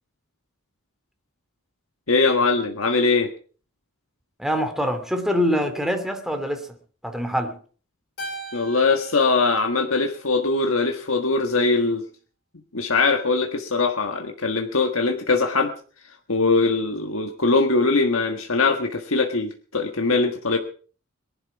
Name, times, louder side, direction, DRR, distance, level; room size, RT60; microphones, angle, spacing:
voice 1, 2.1-3.3 8.5-12.0 12.7-15.7 16.3-20.6, left 3 dB, 80° left, 1.5 m, -21 dB
voice 2, 4.4-6.7 7.0-7.5, equal, ahead, 2.6 m, -24 dB
Keyboard (musical), 8.2-10.7, right 1 dB, 65° left, 5.1 m, -40 dB
22.0 x 11.5 x 4.8 m
head